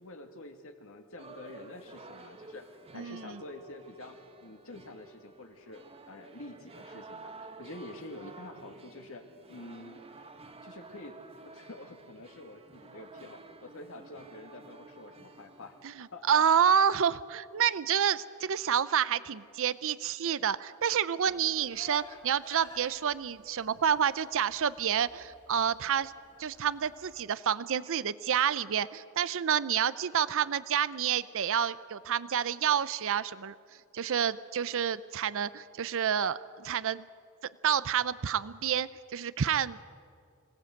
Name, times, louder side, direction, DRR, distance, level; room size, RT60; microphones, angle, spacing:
voice 1, 0.0-2.6 2.9-9.2 9.5-10.0 10.6-11.2 11.4-15.8 16.1-16.4 21.2-21.4, left 2 dB, 65° left, 4 dB, 2.3 m, -47 dB
sound 1, 1.2-15.9, right 3 dB, 25° right, 1.2 m, -51 dB
voice 2, 16.0-26.1 26.4-33.5 33.9-37.0 37.6-39.8, right 8 dB, 65° right, 16 dB, 0.6 m, -29 dB
Livestock farm animals working animals, 21.2-27.3, left 3 dB, 20° left, 2.6 m, -55 dB
25.5 x 17.5 x 7.9 m, 2.3 s
head